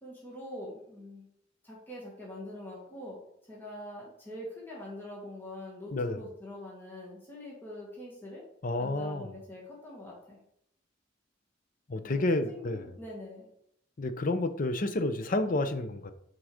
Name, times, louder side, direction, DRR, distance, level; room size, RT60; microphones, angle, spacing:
voice 1, 0.0-1.2 1.6-3.2 3.5-8.4 8.8-10.4 12.0-13.5, left 1 dB, 10° left, 1.9 m, -44 dB
voice 2, 8.6-9.3 11.9-12.9 14.0-16.1, left 2 dB, 45° left, 0.6 m, -30 dB
6.2 x 4.6 x 4.9 m
head